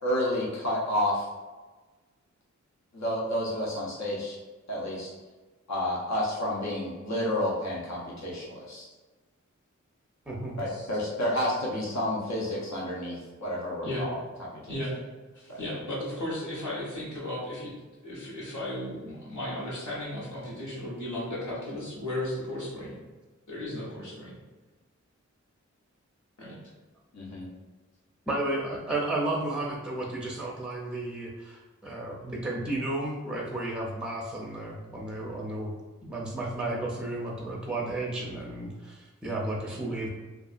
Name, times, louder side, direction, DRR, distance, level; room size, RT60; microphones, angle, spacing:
voice 1, 0.0-1.3 2.9-4.4 4.7-5.1 5.7-8.9 10.6-14.2 15.5-15.6 27.1-27.5, left 1 dB, 65° left, -5 dB, 0.8 m, -30 dB
voice 2, 10.3-10.6 28.3-35.7 36.0-40.1, right 2 dB, 5° right, -2 dB, 0.5 m, -33 dB
voice 3, 14.7-15.0 15.3-17.7 18.0-23.0 23.5-24.4 26.4-26.6, left 1 dB, 85° left, -7 dB, 1.1 m, -35 dB
2.7 x 2.4 x 2.4 m, 1.3 s
wide cardioid pair, 55°, 30 cm